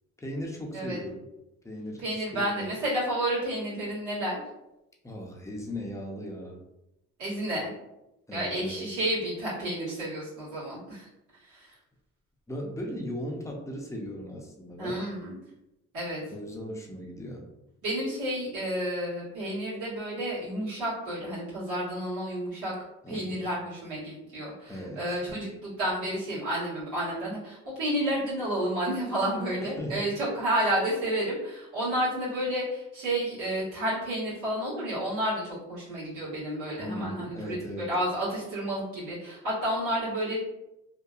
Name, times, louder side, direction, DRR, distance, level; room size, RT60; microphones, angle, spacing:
voice 1, 0.2-1.2 1.6-2.0 2.3-2.8 5.0-6.6 8.3-8.9 12.5-15.0 16.3-17.5 23.0-23.4 24.7-25.0 29.8-30.0 36.8-37.9, equal, 10° left, -1 dB, 0.5 m, -37 dB
voice 2, 2.0-4.4 7.2-7.7 8.3-11.1 11.5-11.7 14.8-15.3 15.9-16.2 17.8-22.7 23.1-25.5 25.8-40.4, right 1 dB, 85° right, -11 dB, 1.4 m, -31 dB
2.7 x 2.2 x 2.3 m, 0.92 s
cardioid pair, 90°, 30 cm